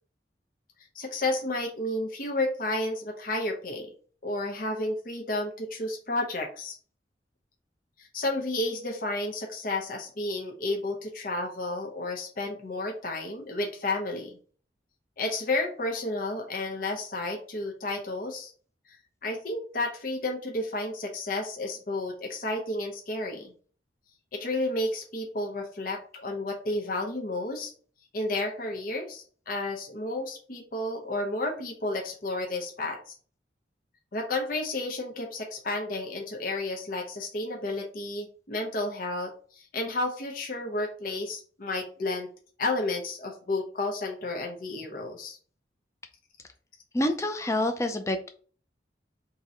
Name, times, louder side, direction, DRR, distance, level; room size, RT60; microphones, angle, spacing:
voice 1, 0.9-3.9 4.2-6.8 8.0-14.3 15.2-18.5 19.2-23.5 24.3-27.7 28.1-33.1 34.1-42.3 42.6-45.4, left 2 dB, 50° left, 1 dB, 0.7 m, -31 dB
voice 2, 46.9-48.3, left 1 dB, 15° left, 6 dB, 0.4 m, -27 dB
3.7 x 2.7 x 4.2 m, 0.43 s
head